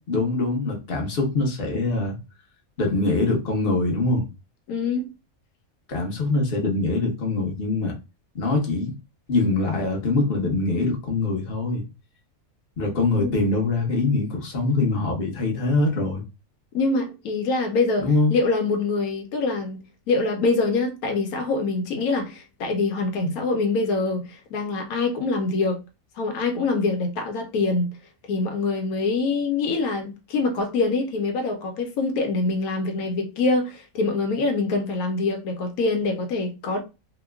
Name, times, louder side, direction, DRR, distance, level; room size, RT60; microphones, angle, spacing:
voice 1, 0.1-2.2 2.8-4.3 5.9-7.9 8.3-8.9 9.3-11.8 12.8-16.2 18.0-18.3, left 2 dB, 45° left, 1.0 m, -23 dB
voice 2, 4.7-5.1 13.2-13.4 16.7-19.8 20.1-25.8 26.2-27.9 28.3-36.8, left 3 dB, 90° left, 1.2 m, -24 dB
2.9 x 2.1 x 3.3 m
omnidirectional pair, 1.5 m